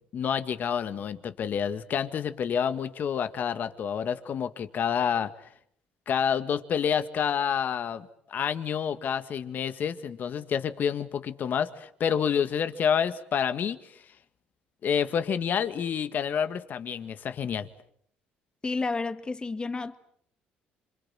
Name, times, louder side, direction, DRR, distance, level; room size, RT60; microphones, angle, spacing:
voice 1, 0.0-5.3 6.1-13.8 14.8-17.7, left 8 dB, 55° left, 1.9 m, -28 dB
voice 2, 18.6-20.0, left 3 dB, 25° left, 1.8 m, -31 dB
27.0 x 25.5 x 7.6 m
supercardioid pair, 80°, 4 cm